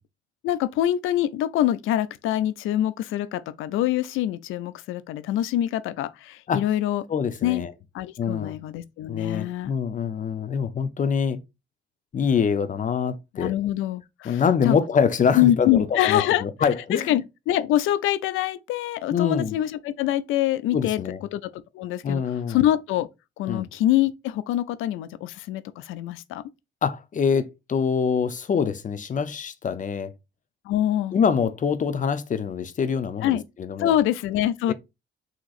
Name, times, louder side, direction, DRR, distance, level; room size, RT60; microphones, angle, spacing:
voice 1, 0.4-7.0 7.4-7.6 7.9-9.7 13.3-14.8 15.4-16.4 16.9-21.0 21.3-22.2 22.5-23.1 23.4-26.4 30.7-31.1 33.2-33.4 33.8-34.7, left 12 dB, 85° left, 0.4 m, -25 dB
voice 2, 7.1-7.7 8.2-8.6 9.1-11.4 12.1-13.5 14.2-17.1 19.1-19.6 20.7-21.2 22.0-22.6 23.5-23.7 26.8-30.1 31.1-33.9 34.7-34.8, left 6 dB, 40° left, 0.6 m, -25 dB
6.3 x 3.0 x 2.4 m
cardioid pair, 90°, 20 cm